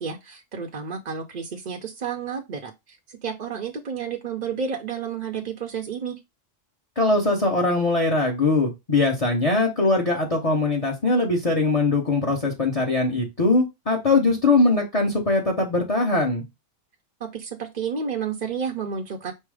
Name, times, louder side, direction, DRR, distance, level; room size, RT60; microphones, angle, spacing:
voice 1, 0.0-6.2 17.2-19.3, right 6 dB, 45° right, 0.6 m, -31 dB
voice 2, 7.0-16.4, left 3 dB, 30° left, 0.9 m, -21 dB
5.4 x 2.0 x 4.7 m
omnidirectional pair, 1.3 m